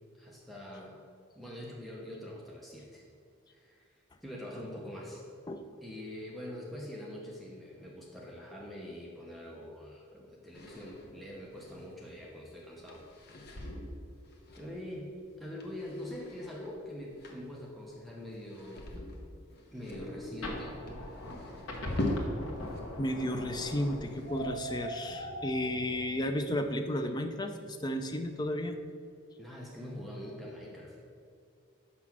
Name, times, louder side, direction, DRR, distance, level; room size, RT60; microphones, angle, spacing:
voice 1, 0.2-1.0 1.3-3.0 3.5-3.9 4.2-5.2 5.8-13.0 14.6-15.1 15.4-18.9 19.7-20.8 29.4-31.0, left 1 dB, ahead, -4 dB, 0.8 m, -44 dB
sound 1, 10.5-22.8 23.1-24.7, left 1 dB, 50° left, 0.9 m, -42 dB
sound 2, 19.8-26.0, left 1 dB, 70° left, 1.4 m, -41 dB
voice 2, 23.0-28.8, left 1 dB, 20° left, 7 dB, 0.4 m, -33 dB
5.9 x 5.7 x 6.1 m, 2.4 s
head